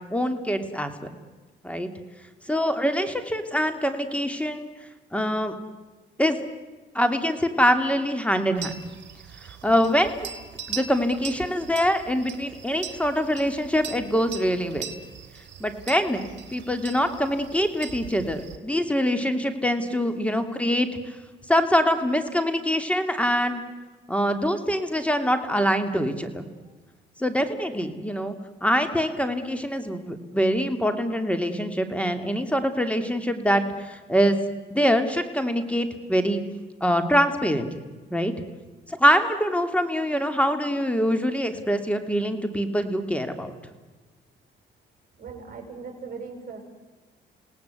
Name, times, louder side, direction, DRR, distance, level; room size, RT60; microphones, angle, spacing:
voice 1, 0.1-0.9 1.6-1.9 2.5-4.7 5.1-5.5 6.2-6.4 6.9-8.7 9.6-10.3 10.7-14.9 15.6-16.2 16.5-20.9 21.5-23.6 24.1-26.5 27.2-28.3 28.6-34.4 34.7-36.4 36.8-37.7 38.1-38.3 39.0-43.5, equal, 5° left, 8 dB, 2.8 m, -24 dB
sound 1, 8.6-18.6, right 7 dB, 60° right, 2.8 m, -40 dB
voice 2, 45.2-46.6, right 5 dB, 45° right, 3 dB, 7.1 m, -39 dB
28.0 x 18.5 x 8.4 m, 1.3 s
cardioid pair, 90°, 20 cm